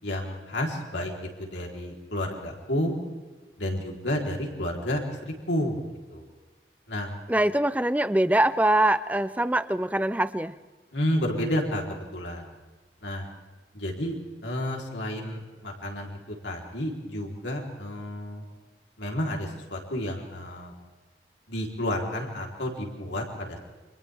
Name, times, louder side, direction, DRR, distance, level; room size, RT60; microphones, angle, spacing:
voice 1, 0.0-3.0 3.6-5.8 6.1-6.2 6.9-7.1 10.9-12.5 13.0-13.3 13.7-14.2 14.4-18.4 19.0-20.7 21.5-23.6, left 1 dB, 85° left, 0 dB, 4.0 m, -31 dB
voice 2, 7.3-10.5, right 1 dB, 10° right, 13 dB, 0.6 m, -23 dB
29.5 x 26.5 x 3.6 m, 1.2 s
head